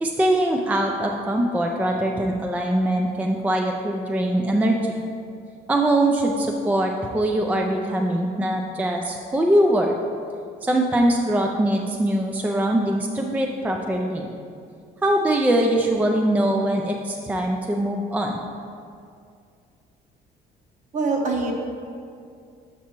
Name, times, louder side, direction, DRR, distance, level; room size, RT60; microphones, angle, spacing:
voice 1, 0.0-4.9 5.7-9.9 10.6-14.3 15.0-18.4, right 1 dB, 10° right, 2 dB, 0.4 m, -22 dB
voice 2, 20.9-21.5, right 3 dB, 45° right, 1 dB, 1.0 m, -23 dB
7.3 x 5.5 x 3.0 m, 2.4 s
cardioid pair, 110°, 17 cm